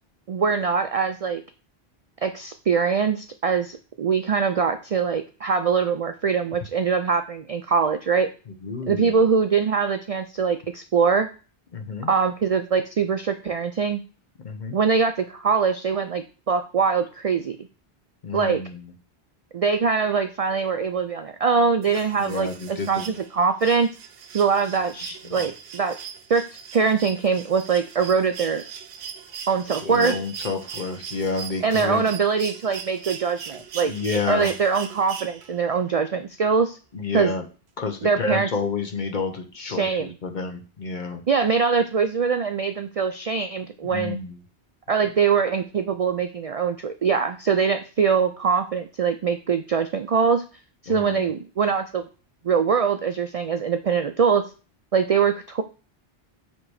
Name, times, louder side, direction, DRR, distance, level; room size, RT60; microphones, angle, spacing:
voice 1, 0.3-1.4 2.2-8.3 8.9-11.3 12.1-14.0 14.7-17.6 18.3-18.6 19.5-23.9 24.3-25.9 26.3-26.5 26.7-28.6 29.5-30.2 31.6-36.8 37.1-37.3 38.0-38.5 39.6-40.1 41.3-44.2 44.9-50.4 50.8-52.1 52.4-54.5 54.9-55.6, right 5 dB, 55° right, 8 dB, 0.4 m, -23 dB
voice 2, 8.5-9.2 11.7-12.1 14.4-14.8 18.2-18.9 22.2-23.2 25.2-25.4 29.8-32.1 33.8-34.5 36.9-37.4 37.8-41.2 43.8-44.4 50.9-51.3, left 4 dB, 50° left, 6 dB, 1.0 m, -29 dB
sound 1, 21.8-35.7 37.2-37.3, right 7 dB, 90° right, 1.0 m, -39 dB
7.4 x 3.0 x 4.8 m, 0.35 s
omnidirectional pair, 1.1 m